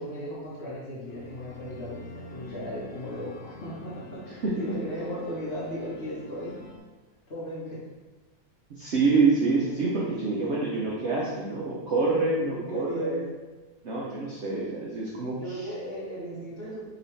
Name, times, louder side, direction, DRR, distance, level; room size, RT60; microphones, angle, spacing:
voice 1, 0.0-4.2 4.6-6.6 7.3-7.8 9.2-9.4 10.0-10.6 12.0-13.2 15.4-16.9, equal, 40° left, -7 dB, 1.2 m, -36 dB
sound 1, 1.1-6.8, left 3 dB, 60° left, 0.7 m, -47 dB
voice 2, 4.3-4.8 8.8-13.2 13.8-15.7, right 3 dB, 55° right, -6 dB, 0.8 m, -27 dB
5.3 x 3.1 x 3.2 m, 1.2 s
omnidirectional pair, 1.8 m